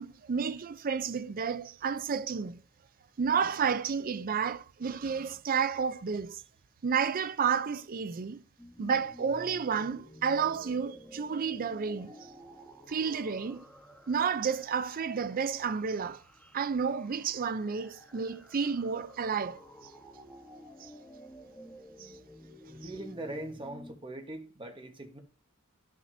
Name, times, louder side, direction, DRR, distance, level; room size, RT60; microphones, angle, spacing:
voice 1, 0.0-2.6 3.2-6.4 6.8-8.4 8.8-12.1 12.9-13.6 14.1-16.2 16.5-19.6 20.8-20.9 22.0-22.1, right 6 dB, 40° right, 0.4 m, -31 dB
sound 1, 8.6-24.0, equal, 5° left, 1.2 m, -52 dB
voice 2, 22.8-25.2, right 1 dB, 25° right, 1.2 m, -41 dB
11.5 x 6.0 x 2.7 m
head